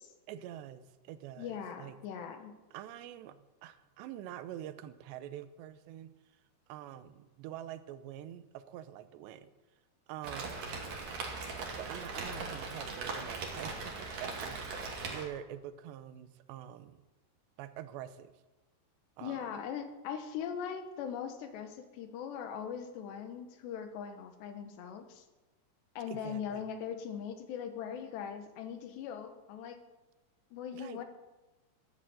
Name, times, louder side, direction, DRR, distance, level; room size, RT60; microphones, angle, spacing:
voice 1, 0.3-2.0 2.7-6.1 6.7-9.5 10.1-10.8 11.7-17.0 17.6-18.3 19.2-19.6 26.1-26.6 30.7-31.0, right 11 dB, 85° right, 12 dB, 3.0 m, -46 dB
voice 2, 1.4-2.5 19.2-25.3 26.0-29.8 30.5-31.0, left 8 dB, 80° left, 7 dB, 3.5 m, -40 dB
Rain, 10.2-15.2, right 4 dB, 45° right, 3.1 m, -39 dB
13.5 x 11.5 x 7.8 m, 1.1 s
omnidirectional pair, 4.9 m